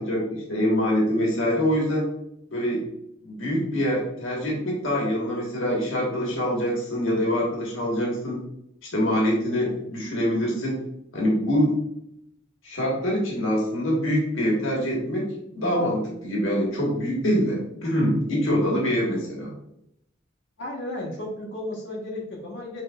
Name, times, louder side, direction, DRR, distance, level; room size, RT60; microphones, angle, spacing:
voice 1, 0.0-2.1 2.5-2.9 3.2-8.4 8.9-10.8 11.1-11.8 12.6-15.3 15.5-19.5, equal, 90° left, -2 dB, 1.4 m, -24 dB
voice 2, 20.6-22.8, left 1 dB, 65° left, -4 dB, 1.4 m, -34 dB
6.5 x 3.2 x 2.4 m, 0.78 s
head